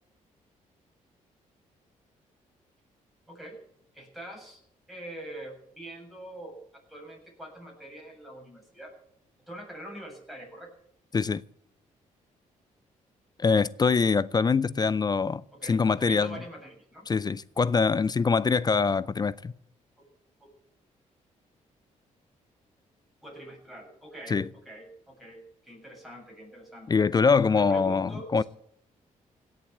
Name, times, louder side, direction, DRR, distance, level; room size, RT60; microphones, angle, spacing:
voice 1, 3.3-3.6 3.9-4.6 4.9-8.9 9.5-10.7 15.5-17.0 20.0-20.1 20.4-20.5 23.2-27.0 27.5-28.5, right 1 dB, ahead, 7.5 m, -44 dB
voice 2, 13.4-15.4 15.7-16.4 17.1-19.5 24.3-24.5 26.9-28.4, left 5 dB, 30° left, 0.5 m, -24 dB
16.5 x 7.4 x 9.5 m
cardioid pair, 80°, 14 cm